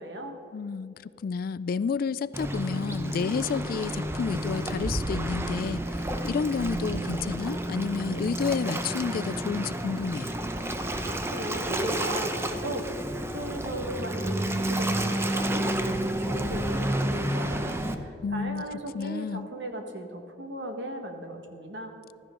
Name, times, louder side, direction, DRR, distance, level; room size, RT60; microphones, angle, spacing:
voice 1, 0.0-0.4 11.3-12.9 13.3-21.9, right 1 dB, 75° right, 4 dB, 1.6 m, -37 dB
voice 2, 0.5-10.3 18.2-18.7 18.9-19.5, left 5 dB, 55° left, 18 dB, 0.3 m, -30 dB
Waves surf, 2.3-17.9, right 1 dB, 15° right, 0.7 m, -30 dB
15.0 x 13.5 x 3.8 m, 2.7 s
head